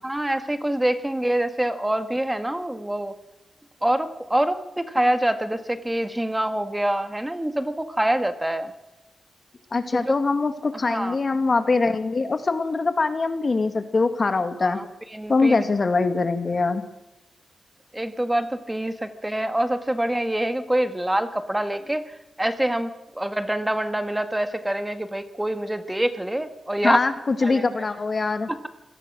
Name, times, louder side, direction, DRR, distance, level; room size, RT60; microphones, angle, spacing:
voice 1, 0.0-3.1 3.8-8.7 9.9-10.1 10.9-11.2 14.6-14.9 15.1-15.6 17.9-27.0 27.4-27.9 28.5-28.7, right 1 dB, 10° right, 9 dB, 1.7 m, -25 dB
voice 2, 9.7-14.8 15.3-16.8 26.8-28.5, left 3 dB, 45° left, 9 dB, 2.1 m, -23 dB
25.5 x 18.0 x 6.2 m, 0.97 s
cardioid pair, 85°, 0 cm